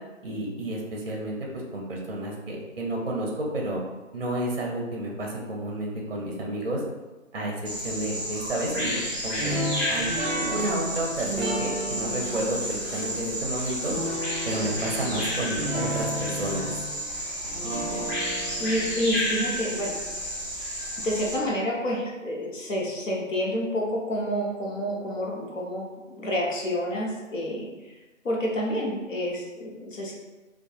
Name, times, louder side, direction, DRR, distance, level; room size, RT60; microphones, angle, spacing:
voice 1, 0.2-3.8 4.1-6.8 7.3-9.6 9.9-13.9 14.4-16.7, right 1 dB, 50° right, -2 dB, 0.5 m, -31 dB
Bird vocalization bird call bird song, 7.6-21.3, equal, 25° left, 1.1 m, -31 dB
sound 1, 9.4-20.4, equal, ahead, 0.5 m, -34 dB
voice 2, 17.7-20.0 21.0-27.9 28.2-30.1, equal, 75° left, -3 dB, 0.8 m, -29 dB
2.6 x 2.2 x 2.3 m, 1.2 s
figure-of-eight pair, 175°, 39 cm